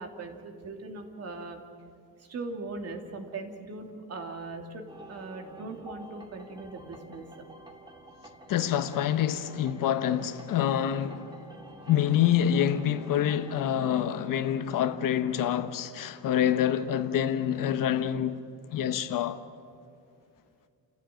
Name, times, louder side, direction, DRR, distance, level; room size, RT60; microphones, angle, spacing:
voice 1, 0.0-1.6 2.2-7.3, right 3 dB, 40° right, 2.8 m, -40 dB
sound 1, 4.9-13.6, right 1 dB, 10° right, 2.5 m, -49 dB
voice 2, 8.5-11.4 11.9-18.4 18.7-19.4, left 10 dB, 60° left, 1.2 m, -26 dB
29.5 x 15.5 x 9.1 m
cardioid pair, 180°, 37 cm